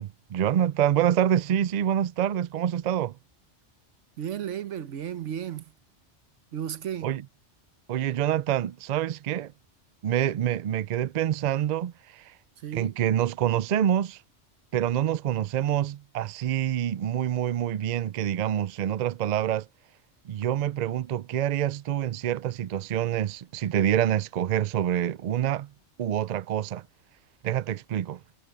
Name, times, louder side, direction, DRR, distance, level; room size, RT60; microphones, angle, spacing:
voice 1, 0.0-3.1 7.0-7.2 7.9-9.5 10.0-12.3 12.7-14.2 14.7-19.7 20.3-25.7 26.0-26.8 27.4-28.2, right 10 dB, 65° right, 0.4 m, -26 dB
voice 2, 4.2-5.7 6.5-7.1 12.6-13.0, right 9 dB, 85° right, 1.2 m, -34 dB
omnidirectional pair, 1.2 m